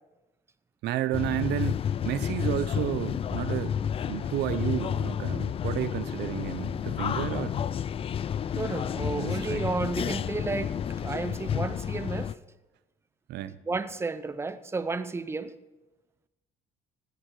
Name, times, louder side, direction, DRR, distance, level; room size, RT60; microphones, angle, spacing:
voice 1, 0.8-3.8 4.0-7.6 9.1-9.6 13.3-13.6, right 12 dB, 80° right, 0.8 m, -31 dB
sound 1, 1.1-12.3, left 8 dB, 35° left, 0.4 m, -31 dB
voice 2, 8.6-10.7 11.0-12.3 13.7-15.5, right 3 dB, 15° right, 0.7 m, -32 dB
16.5 x 9.6 x 4.8 m
cardioid pair, 110°, 17 cm